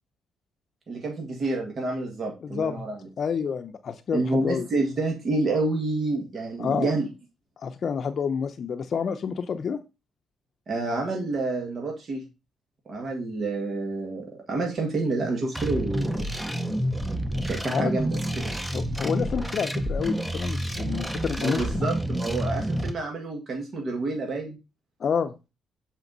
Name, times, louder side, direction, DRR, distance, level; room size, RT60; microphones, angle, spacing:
voice 1, 0.9-3.0 4.1-7.1 10.7-12.2 12.8-16.2 17.5-18.5 21.4-24.6, right 2 dB, 50° right, 2 dB, 1.7 m, -28 dB
voice 2, 2.4-2.8 3.2-4.7 6.6-6.9 7.6-9.8 17.6-17.9 18.7-21.9 25.0-25.3, left 6 dB, 55° left, 7 dB, 0.6 m, -29 dB
sound 1, 15.5-22.9, equal, 5° right, 0.8 m, -29 dB
7.1 x 4.4 x 3.9 m, 0.27 s
cardioid pair, 90°, 0 cm